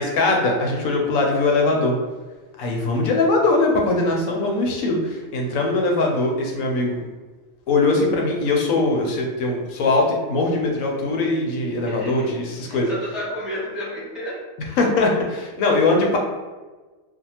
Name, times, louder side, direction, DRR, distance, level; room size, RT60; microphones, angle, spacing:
voice 1, 0.0-1.9 2.6-7.0 7.7-12.9 14.8-16.2, left 2 dB, 90° left, 0 dB, 1.0 m, -21 dB
voice 2, 11.9-14.3, equal, ahead, -10 dB, 1.2 m, -32 dB
2.6 x 2.3 x 2.8 m, 1.3 s
omnidirectional pair, 1.4 m